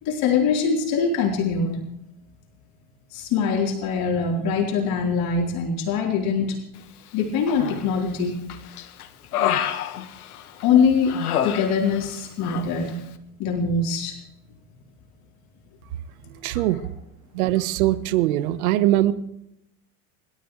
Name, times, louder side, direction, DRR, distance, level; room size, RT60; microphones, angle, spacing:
voice 1, 0.0-1.9 3.1-6.6 7.1-8.4 10.6-13.0 13.4-14.2 16.5-16.6, left 5 dB, 55° left, -1 dB, 4.4 m, -23 dB
Human voice, 7.5-8.1 8.5-10.6 11.1-12.1 12.4-12.7, left 10 dB, 85° left, 1.9 m, -28 dB
voice 2, 16.4-16.8 17.3-19.1, right 15 dB, 70° right, 12 dB, 1.4 m, -21 dB
28.5 x 13.5 x 3.4 m, 0.82 s
hypercardioid pair, 95°, 44 cm